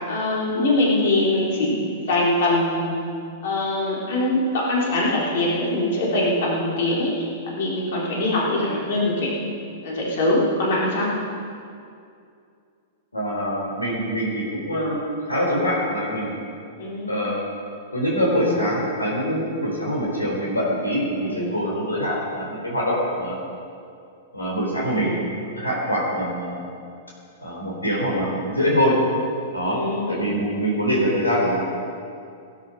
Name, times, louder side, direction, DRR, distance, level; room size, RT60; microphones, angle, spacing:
voice 1, 0.1-2.8 3.4-9.3 9.8-11.1 16.7-17.3 21.2-21.6 24.8-25.3 29.7-30.3, left 1 dB, 60° left, -5 dB, 3.9 m, -23 dB
voice 2, 13.1-16.4 17.1-17.3 17.9-23.4 24.3-25.1 25.6-26.6 27.4-29.0 29.5-29.8 30.1-31.7, equal, 90° left, -4 dB, 4.0 m, -24 dB
18.5 x 9.8 x 5.1 m, 2.4 s
figure-of-eight pair, 100°, 0 cm